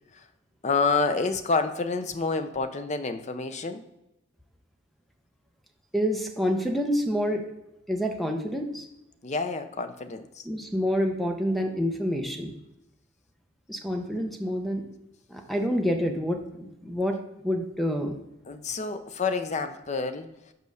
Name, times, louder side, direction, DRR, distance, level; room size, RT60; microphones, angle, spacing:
voice 1, 0.6-3.8 9.2-10.4 18.5-20.3, left 4 dB, 35° left, 9 dB, 0.5 m, -28 dB
voice 2, 5.9-7.4 7.9-8.8 10.4-12.5 13.7-14.8 15.3-17.2 17.4-18.2, equal, ahead, 3 dB, 0.8 m, -27 dB
5.4 x 5.2 x 6.4 m, 0.92 s
head